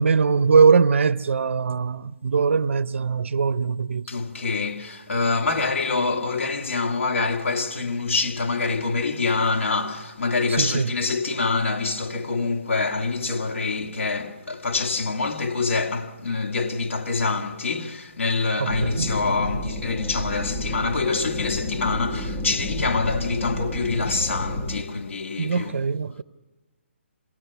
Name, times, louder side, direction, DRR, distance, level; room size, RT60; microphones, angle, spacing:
voice 1, 0.0-4.1 10.6-10.9 18.6-19.1 25.4-26.2, right 5 dB, 70° right, 0.6 m, -21 dB
voice 2, 4.1-25.8, left 3 dB, 75° left, 1.8 m, -25 dB
sound 1, 18.7-24.8, left 1 dB, 20° left, 1.2 m, -30 dB
26.5 x 18.0 x 6.8 m
hypercardioid pair, 165°, 7 cm